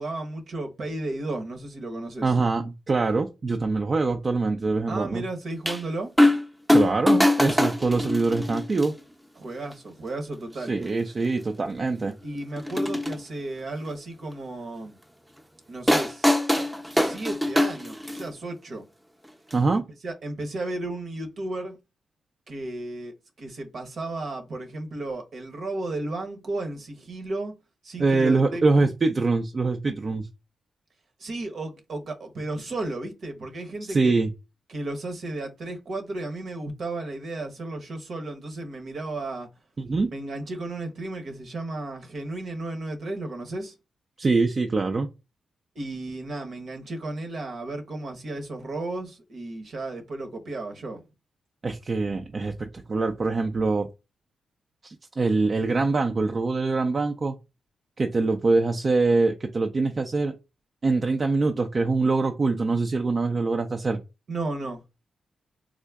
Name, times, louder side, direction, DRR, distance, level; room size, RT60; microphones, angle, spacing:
voice 1, 0.0-2.3 4.9-6.1 9.4-10.8 12.2-15.0 15.7-16.4 16.9-18.8 19.7-21.8 22.5-27.5 27.8-28.9 31.2-34.1 34.7-39.5 40.1-43.7 45.7-51.0 64.3-64.8, right 2 dB, 65° right, 0.9 m, -34 dB
voice 2, 2.2-5.2 6.7-8.9 10.7-12.1 19.5-19.8 28.0-30.3 33.9-34.3 39.8-40.1 44.2-45.1 51.6-53.9 54.8-57.4 58.0-60.3 60.8-64.0, right 3 dB, 45° right, 0.4 m, -24 dB
sound 1, 5.7-5.8 6.2-6.4 6.7-8.9 9.7-9.8 10.8-10.9 11.2-11.3 12.6-13.2 15.9-18.3 19.5-19.6, left 1 dB, 5° right, 0.6 m, -22 dB
3.6 x 2.1 x 3.4 m
cardioid pair, 60°, 0 cm